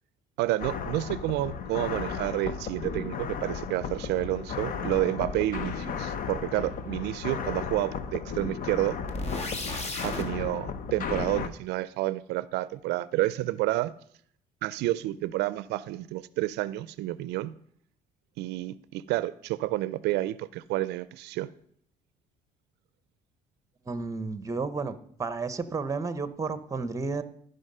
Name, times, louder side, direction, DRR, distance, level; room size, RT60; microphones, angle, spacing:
voice 1, 0.4-9.0 10.0-13.9 14.6-17.5 18.4-21.5, right 16 dB, 85° right, 0.4 m, -30 dB
sound 1, 0.6-11.5, left 6 dB, 55° left, 0.8 m, -35 dB
sound 2, 9.1-10.3, left 2 dB, 40° left, 1.7 m, -33 dB
voice 2, 23.9-27.2, right 4 dB, 20° right, 0.9 m, -32 dB
14.5 x 5.5 x 5.5 m
cardioid pair, 110°, 17 cm